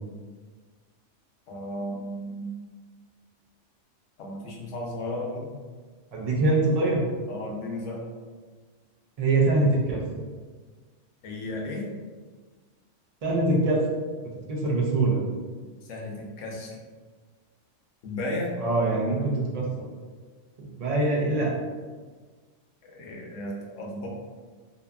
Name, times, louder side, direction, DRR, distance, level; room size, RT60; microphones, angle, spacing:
voice 1, 1.5-2.5 4.2-5.5 7.3-8.0 11.2-11.9 15.9-16.8 18.0-18.6 22.8-24.1, left 1 dB, 80° left, -1 dB, 0.9 m, -34 dB
voice 2, 6.1-7.0 9.2-10.0 13.2-13.9 14.5-15.2 18.6-19.9 20.6-21.5, right 2 dB, 55° right, -3 dB, 0.4 m, -23 dB
2.7 x 2.4 x 2.2 m, 1.4 s
omnidirectional pair, 1.3 m